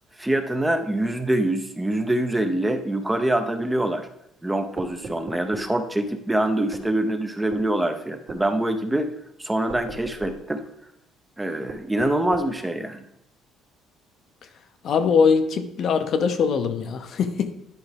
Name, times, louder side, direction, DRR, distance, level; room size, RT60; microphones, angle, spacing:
voice 1, 0.2-4.1 4.4-9.1 9.4-10.6 11.4-13.0, right 1 dB, 10° right, 7 dB, 0.6 m, -25 dB
sound 1, 4.8-5.7 6.7-6.9 7.5-7.7 8.3-8.5 9.7-10.4 11.7-12.5, right 2 dB, 50° right, 1.5 m, -37 dB
voice 2, 14.8-17.5, left 6 dB, 50° left, 8 dB, 0.7 m, -22 dB
10.5 x 4.6 x 3.5 m, 0.77 s
cardioid pair, 125°, 0 cm